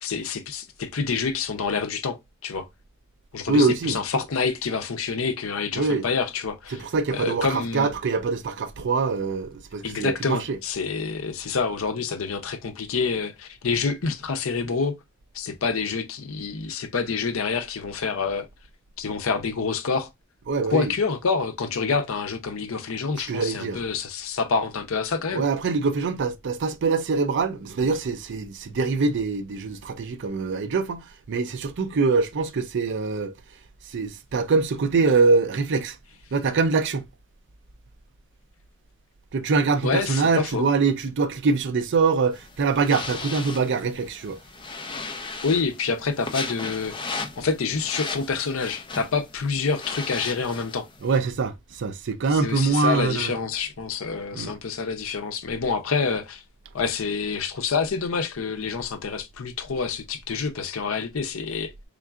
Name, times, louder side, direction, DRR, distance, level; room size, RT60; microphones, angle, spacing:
voice 1, 0.0-2.2 2.4-2.6 3.3-6.8 7.1-7.9 9.8-14.9 15.3-18.5 19.0-20.1 20.7-25.4 39.8-40.7 45.4-50.9 52.3-56.4 56.7-61.7, left 5 dB, 75° left, 0.6 m, -27 dB
voice 2, 3.5-4.0 5.7-6.0 6.7-10.6 20.5-20.9 23.3-23.8 25.3-33.3 33.9-36.0 36.3-37.0 39.3-44.4 51.0-53.3 54.3-54.5, right 4 dB, 60° right, 0.5 m, -24 dB
sound 1, 42.3-51.2, left 4 dB, 25° left, 0.5 m, -36 dB
3.7 x 3.6 x 2.3 m
head